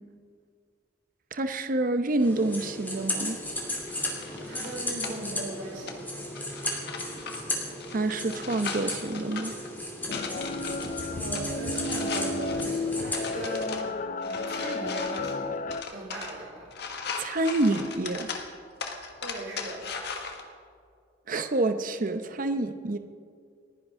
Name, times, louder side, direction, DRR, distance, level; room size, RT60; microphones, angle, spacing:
voice 1, 1.3-3.4 7.9-9.5 17.2-18.3 21.3-23.0, right 2 dB, 45° right, 8 dB, 0.8 m, -27 dB
sound 1, 2.2-13.6, left 1 dB, 10° left, 2.7 m, -35 dB
sound 2, 3.4-20.4, left 5 dB, 60° left, 1.4 m, -40 dB
voice 2, 4.4-6.0 11.1-13.9 14.2-15.5 15.9-16.7 19.2-19.8, right 2 dB, 70° right, -5 dB, 4.8 m, -38 dB
sound 3, 10.1-15.8, left 2 dB, 45° left, 0.6 m, -32 dB
29.5 x 10.5 x 3.7 m, 2.2 s
head